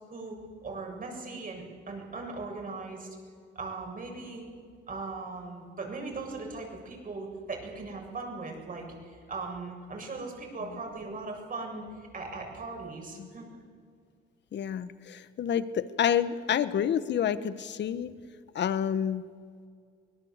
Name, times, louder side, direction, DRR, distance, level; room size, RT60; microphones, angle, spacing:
voice 1, 0.1-3.2 3.6-4.4 4.9-13.6, right 3 dB, 45° right, 2 dB, 7.3 m, -39 dB
voice 2, 14.5-18.1 18.5-19.2, left 9 dB, 60° left, 14 dB, 1.3 m, -28 dB
24.5 x 19.0 x 8.2 m, 2.1 s
cardioid pair, 90°, 20 cm